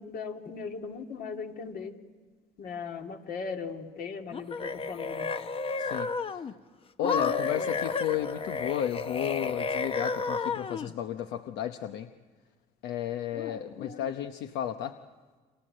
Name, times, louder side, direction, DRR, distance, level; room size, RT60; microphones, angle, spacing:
voice 1, 0.0-1.9 2.6-5.3 7.0-7.7 13.3-14.1, left 5 dB, 60° left, 3 dB, 2.4 m, -38 dB
sound 1, 4.3-6.5 7.0-10.9, left 5 dB, 35° left, 0.8 m, -32 dB
voice 2, 5.8-6.5 7.0-12.1 12.8-15.0, left 10 dB, 85° left, 8 dB, 0.9 m, -33 dB
29.5 x 25.5 x 7.7 m, 1.4 s
cardioid pair, 110°, 17 cm